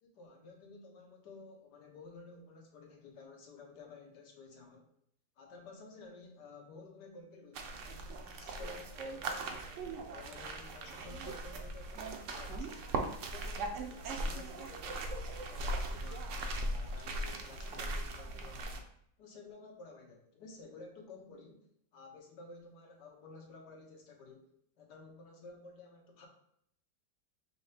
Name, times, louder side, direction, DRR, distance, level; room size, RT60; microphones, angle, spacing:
voice 1, 0.0-4.9 5.4-7.8 8.2-12.8 13.2-18.8 19.2-21.7 21.9-24.5 24.8-26.3, left 3 dB, 80° left, 1 dB, 1.5 m, -53 dB
sound 1, 7.5-18.8, right 2 dB, 65° right, 0.8 m, -39 dB
5.5 x 2.8 x 3.3 m, 0.72 s
omnidirectional pair, 1.8 m